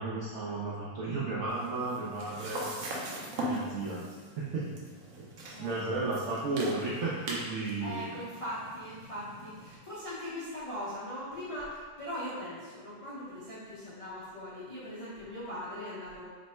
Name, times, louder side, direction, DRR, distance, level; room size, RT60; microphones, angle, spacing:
voice 1, 0.0-2.7 3.4-4.0 4.4-4.7 5.2-5.3 5.6-8.1, right 3 dB, 90° right, -6 dB, 0.6 m, -33 dB
sound 1, 1.5-9.8, right 1 dB, 65° right, 0.9 m, -41 dB
voice 2, 5.5-6.0 7.8-16.3, equal, 60° left, -11 dB, 0.3 m, -40 dB
3.2 x 2.1 x 4.2 m, 1.5 s
omnidirectional pair, 1.9 m